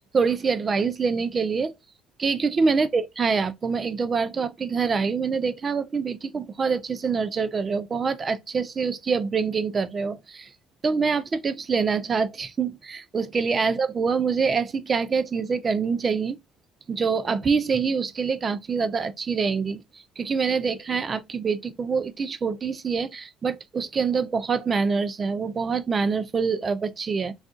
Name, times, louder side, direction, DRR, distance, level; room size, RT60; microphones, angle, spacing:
voice 1, 0.1-1.7 2.2-10.5 10.8-16.4 16.9-19.8 20.2-27.3, right 5 dB, 35° right, 0.4 m, -25 dB
2.4 x 2.4 x 3.6 m
supercardioid pair, 75°, 0 cm